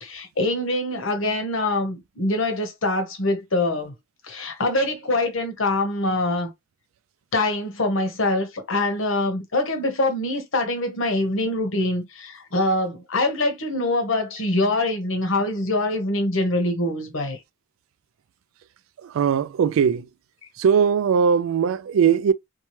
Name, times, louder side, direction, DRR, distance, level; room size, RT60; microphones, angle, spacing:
voice 1, 0.0-3.9 4.2-6.5 7.3-17.4, left 2 dB, 75° left, 1.0 m, -24 dB
voice 2, 19.0-20.1 20.6-22.3, right 7 dB, 85° right, 0.3 m, -20 dB
2.8 x 2.2 x 3.0 m
head